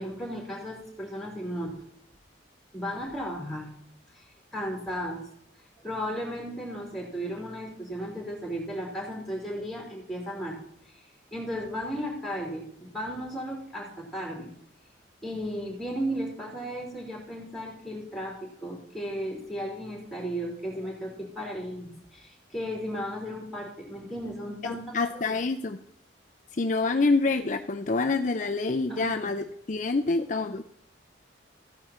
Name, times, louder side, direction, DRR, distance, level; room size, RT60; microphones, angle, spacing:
voice 1, 0.0-1.7 2.7-3.7 4.2-4.3 4.5-5.2 5.8-10.6 11.3-14.5 15.2-25.4 28.9-29.3, equal, ahead, -2 dB, 3.8 m, -35 dB
voice 2, 24.9-25.8 26.6-30.6, left 3 dB, 40° left, 6 dB, 0.5 m, -26 dB
14.5 x 9.8 x 4.3 m, 0.66 s
head